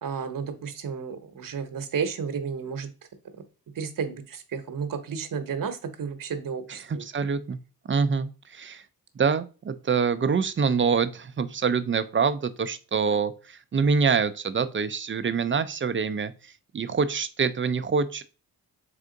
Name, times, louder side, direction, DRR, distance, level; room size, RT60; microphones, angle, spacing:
voice 1, 0.0-2.9 3.8-7.3, right 6 dB, 55° right, 9 dB, 0.9 m, -32 dB
voice 2, 6.7-7.6 7.9-8.8 9.2-18.2, right 5 dB, 30° right, 13 dB, 0.4 m, -26 dB
3.6 x 3.4 x 3.8 m, 0.34 s
cardioid pair, 55°, 40 cm